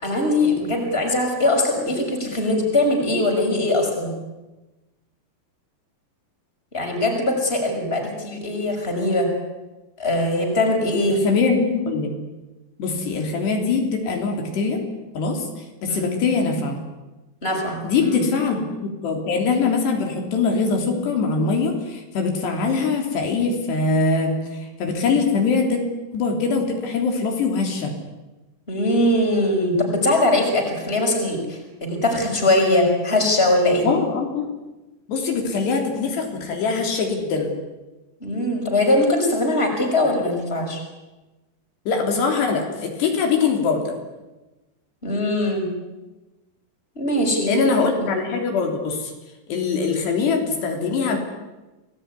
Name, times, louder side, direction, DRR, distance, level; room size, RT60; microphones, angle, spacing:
voice 1, 0.0-4.1 6.7-9.3 10.0-11.2 15.9-16.1 17.4-18.2 28.7-33.9 38.2-40.8 45.0-45.7 47.0-48.1, left 1 dB, 15° left, 2 dB, 6.1 m, -21 dB
voice 2, 11.1-12.1 12.8-14.8 15.1-15.5 15.8-16.8 17.8-18.6 19.0-25.8 26.1-27.9 33.8-34.5 35.1-37.5 41.9-44.0 47.5-49.1 49.5-51.2, left 4 dB, 75° left, 3 dB, 5.5 m, -22 dB
29.0 x 20.0 x 9.8 m, 1.1 s
omnidirectional pair, 5.0 m